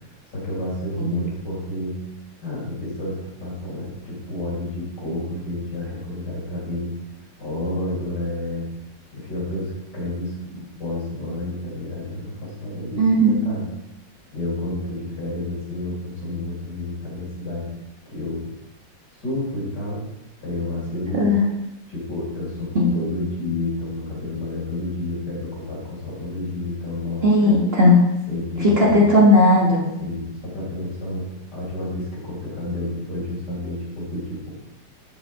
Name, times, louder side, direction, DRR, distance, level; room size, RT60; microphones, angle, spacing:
voice 1, 0.3-2.0 2.4-6.9 7.4-8.7 9.1-13.7 14.3-17.7 18.1-18.4 19.2-20.0 20.4-21.3 21.9-27.6 28.3-29.1 30.0-34.5, left 2 dB, 60° left, -6 dB, 4.7 m, -30 dB
voice 2, 13.0-13.3 21.2-21.5 22.7-22.9 27.2-28.0 28.8-29.8, left 1 dB, 35° right, -3 dB, 1.7 m, -16 dB
12.5 x 5.8 x 4.8 m, 0.91 s
omnidirectional pair, 2.0 m